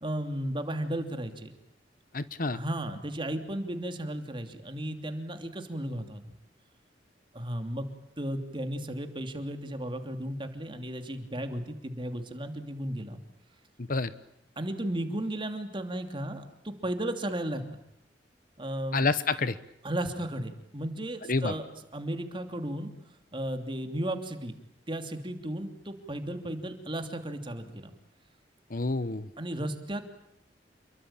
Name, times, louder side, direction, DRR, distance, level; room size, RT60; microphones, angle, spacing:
voice 1, 0.0-1.5 2.5-6.3 7.3-7.9 8.2-13.2 14.6-17.8 18.6-19.1 19.8-21.6 21.9-22.9 23.3-24.5 24.9-27.9 29.4-30.0, right 1 dB, 30° right, 6 dB, 2.9 m, -34 dB
voice 2, 2.1-2.6 13.9-14.1 18.9-19.6 21.3-21.5 28.7-29.3, left 3 dB, 50° left, 14 dB, 1.1 m, -28 dB
28.5 x 23.0 x 8.9 m, 0.79 s
head